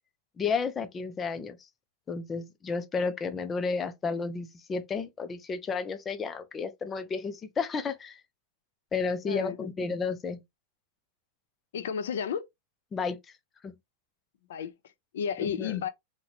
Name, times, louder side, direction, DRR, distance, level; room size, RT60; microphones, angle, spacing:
voice 1, 0.4-1.6 2.1-8.2 8.9-10.4 12.9-13.2 13.6-13.8 15.4-15.8, left 5 dB, 15° left, 0.3 m, -32 dB
voice 2, 9.2-9.6 11.7-12.4 14.5-14.7 15.1-15.9, left 7 dB, 75° left, 0.6 m, -32 dB
3.9 x 2.1 x 2.9 m
supercardioid pair, 180°, 0 cm